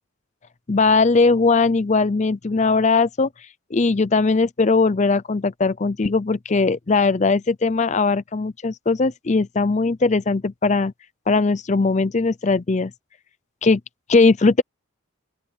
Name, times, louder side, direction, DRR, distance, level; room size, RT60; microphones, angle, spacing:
voice 1, 0.7-3.3 3.7-10.9 11.3-12.9 13.6-13.8 14.1-14.6, left 3 dB, 35° left, 0.5 m, -19 dB
open air
head